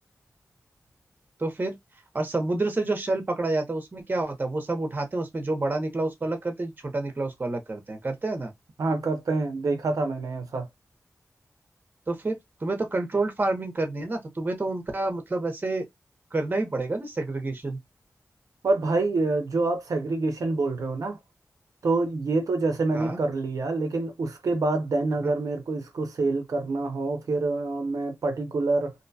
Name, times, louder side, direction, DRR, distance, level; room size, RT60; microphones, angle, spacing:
voice 1, 1.4-1.8 2.1-8.5 12.1-15.9 16.3-17.8 22.9-23.2 25.2-25.3, right 2 dB, 35° right, 0.7 m, -28 dB
voice 2, 8.8-10.7 18.6-21.2 21.8-28.9, right 3 dB, 80° right, 0.5 m, -26 dB
2.6 x 2.2 x 2.6 m
wide cardioid pair, 110°, 6 cm